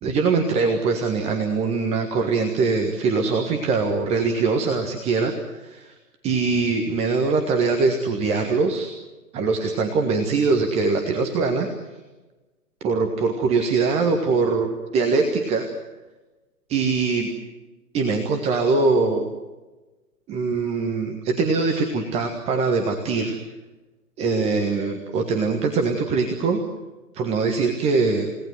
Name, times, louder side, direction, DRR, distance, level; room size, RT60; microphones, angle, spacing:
voice 1, 0.0-5.9 6.2-8.9 9.3-11.7 12.8-15.7 16.7-17.3 17.9-19.3 20.3-23.4 24.2-26.6 27.1-28.3, right 4 dB, 15° right, 4 dB, 1.5 m, -22 dB
30.0 x 18.0 x 7.9 m, 1.2 s
figure-of-eight pair, 130°, 47 cm